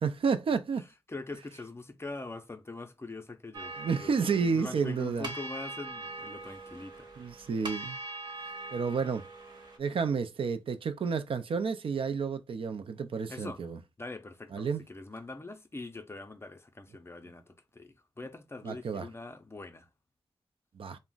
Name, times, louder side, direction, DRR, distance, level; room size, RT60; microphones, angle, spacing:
voice 1, 0.0-0.8 3.8-5.3 7.2-8.0 8.7-9.3 9.8-13.8 14.5-14.8 18.6-19.1 20.7-21.0, right 5 dB, 60° right, 0.4 m, -31 dB
voice 2, 1.1-7.1 13.3-13.6 14.0-19.9, left 3 dB, 25° left, 0.5 m, -43 dB
sound 1, 3.5-9.8, right 2 dB, 45° right, 0.9 m, -42 dB
2.4 x 2.0 x 3.7 m
wide cardioid pair, 75°, 10 cm